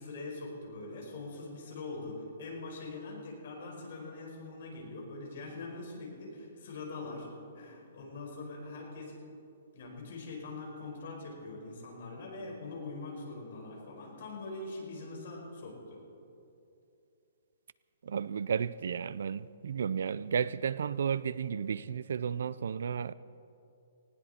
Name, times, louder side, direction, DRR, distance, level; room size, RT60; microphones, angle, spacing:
voice 1, 0.0-7.3 7.5-9.1 9.7-16.0, left 3 dB, 50° left, 4.9 m, -43 dB
voice 2, 18.0-23.1, right 7 dB, 65° right, 0.4 m, -33 dB
19.0 x 17.5 x 4.3 m
hypercardioid pair, 175°, 0 cm